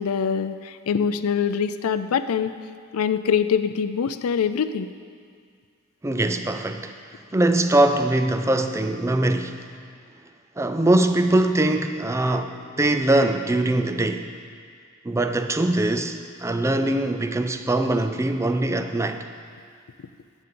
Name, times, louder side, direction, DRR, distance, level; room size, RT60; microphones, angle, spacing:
voice 1, 0.0-2.5 2.9-4.9, left 7 dB, 90° left, 12 dB, 0.4 m, -24 dB
voice 2, 6.0-9.7 10.6-14.3 15.0-19.3, right 1 dB, 15° right, 8 dB, 0.4 m, -22 dB
13.0 x 8.1 x 3.8 m, 2.1 s
head